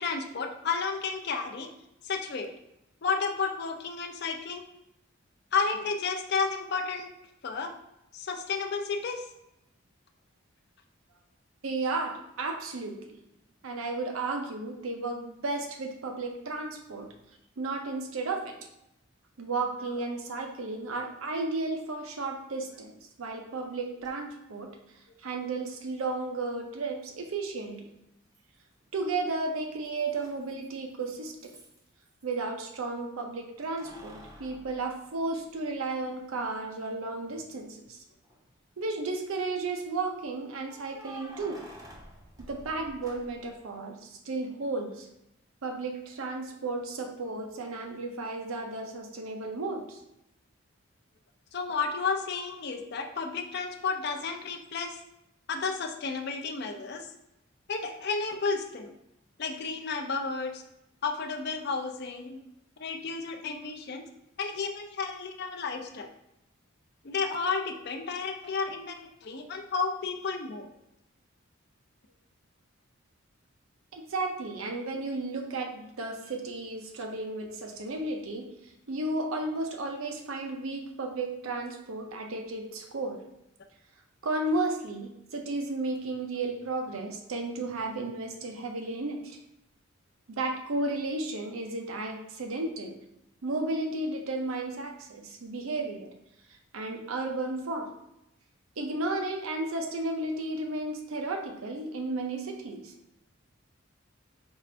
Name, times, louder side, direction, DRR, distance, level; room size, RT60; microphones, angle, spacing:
voice 1, 0.0-1.7 2.0-2.5 3.0-4.6 5.5-7.1 7.4-7.7 8.1-9.2 51.5-55.0 55.5-57.1 57.7-58.9 59.4-60.6 61.0-62.4 62.8-64.1 64.4-66.1 67.0-70.7, left 5 dB, 50° left, 4 dB, 0.4 m, -32 dB
voice 2, 11.6-13.2 13.6-17.1 17.6-18.5 19.4-24.7 25.2-27.9 28.9-31.3 32.2-38.0 38.8-41.6 42.4-45.1 45.6-50.0 73.9-78.5 78.9-83.2 84.2-89.4 90.3-93.0 93.4-96.1 96.7-97.9 98.8-102.9, right 2 dB, 85° right, 3 dB, 0.6 m, -33 dB
Keys jangling, 24.0-24.1 26.0-26.1 28.3-28.9 29.2-32.4 33.6-35.7 36.2-36.3 38.1-38.7 40.6-43.6, right 1 dB, 15° right, 0.6 m, -50 dB
5.3 x 2.5 x 3.2 m, 0.83 s
head